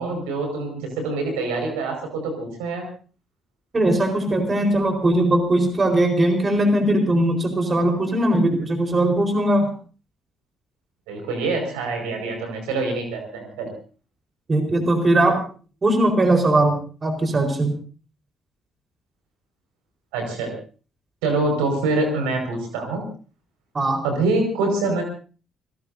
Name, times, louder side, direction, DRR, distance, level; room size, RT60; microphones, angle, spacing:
voice 1, 0.0-2.8 11.1-13.7 20.1-20.5 21.2-23.1 24.0-25.0, right 3 dB, 70° right, 3 dB, 5.4 m, -25 dB
voice 2, 3.7-9.7 14.5-15.4 15.8-17.7 23.7-24.0, right 1 dB, 30° right, 4 dB, 4.3 m, -20 dB
30.0 x 17.5 x 2.7 m, 0.39 s
figure-of-eight pair, 45°, 0 cm